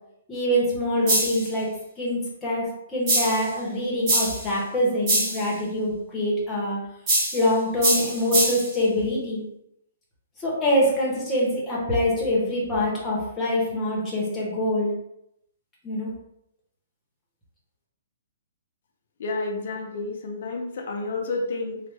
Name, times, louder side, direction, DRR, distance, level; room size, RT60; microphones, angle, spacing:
voice 1, 0.3-1.7 2.0-2.7 2.9-6.8 7.3-9.4 10.4-14.9 15.8-16.1, left 1 dB, 10° left, -5 dB, 0.8 m, -24 dB
sound 1, 1.1-1.5 3.1-3.5 4.1-4.5 5.1-5.5 7.1-7.5 7.8-8.7, right 1 dB, 25° right, 1.0 m, -23 dB
voice 2, 19.2-21.8, left 3 dB, 50° left, 2 dB, 0.6 m, -30 dB
3.1 x 2.1 x 3.3 m, 0.79 s
hypercardioid pair, 175°, 0 cm